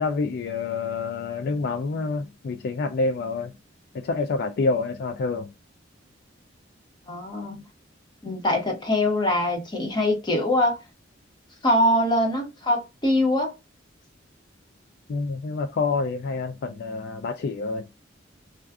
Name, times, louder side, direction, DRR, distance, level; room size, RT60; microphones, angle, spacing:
voice 1, 0.0-3.5 3.9-5.5 15.1-17.8, left 4 dB, 55° left, 0.3 m, -27 dB
voice 2, 7.1-7.7 8.2-10.8 11.6-13.5, left 1 dB, 25° left, 1.1 m, -23 dB
2.4 x 2.4 x 3.4 m
head